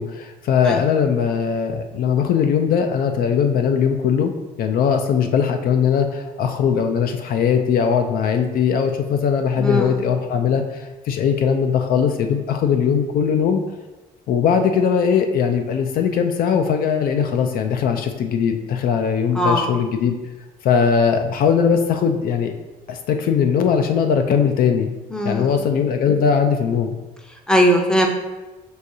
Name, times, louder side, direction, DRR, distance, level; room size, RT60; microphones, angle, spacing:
voice 1, 0.0-13.6 14.3-20.2 20.6-22.5 22.9-24.9 25.2-27.0, left 7 dB, 60° left, 6 dB, 0.4 m, -20 dB
voice 2, 9.6-9.9 19.3-19.7 25.1-25.5 27.5-28.1, equal, 5° left, 2 dB, 0.5 m, -19 dB
6.2 x 2.6 x 2.7 m, 1.1 s
cardioid pair, 110°, 17 cm